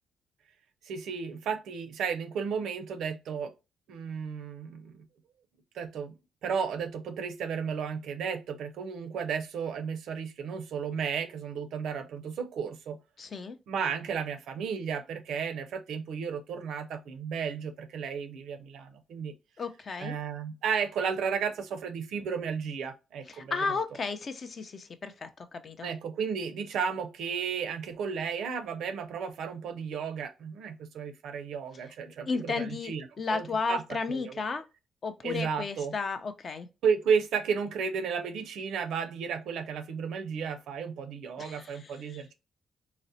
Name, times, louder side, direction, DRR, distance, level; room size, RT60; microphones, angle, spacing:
voice 1, 0.9-3.5 3.9-5.0 5.7-6.1 6.4-13.0 13.7-19.3 20.0-23.8 25.8-33.8 34.1-34.4 35.2-35.9 36.8-42.3, right 6 dB, 75° right, 0.4 m, -33 dB
voice 2, 13.2-13.6 19.6-20.2 23.3-25.9 31.7-31.9 32.3-34.6 35.0-36.7 41.4-42.2, left 4 dB, 45° left, 0.5 m, -34 dB
3.9 x 2.0 x 2.6 m
cardioid pair, 90°, 0 cm